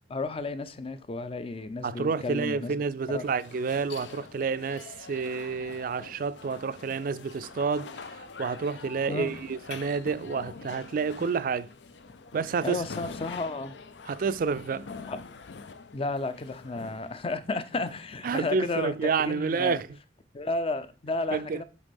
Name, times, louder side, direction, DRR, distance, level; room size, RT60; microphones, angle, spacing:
voice 1, 0.1-2.8 3.1-3.2 9.1-9.3 12.6-13.7 15.1-15.2 15.9-19.8 20.3-21.6, left 3 dB, 35° left, 0.5 m, -32 dB
voice 2, 1.8-11.7 12.3-12.8 14.1-14.9 18.2-19.9 21.3-21.6, right 5 dB, 55° right, 0.4 m, -29 dB
sound 1, 1.9-18.9, left 4 dB, 85° left, 0.6 m, -45 dB
7.2 x 4.1 x 5.3 m
head